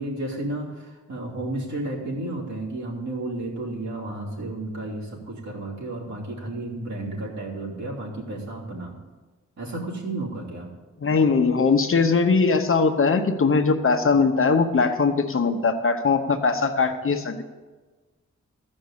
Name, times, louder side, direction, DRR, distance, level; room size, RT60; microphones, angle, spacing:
voice 1, 0.0-9.0 9.6-10.7, right 2 dB, 65° right, -5 dB, 3.3 m, -32 dB
voice 2, 11.0-17.4, left 4 dB, 45° left, 6 dB, 0.9 m, -20 dB
14.5 x 5.4 x 8.5 m, 1.3 s
wide cardioid pair, 130°, 30 cm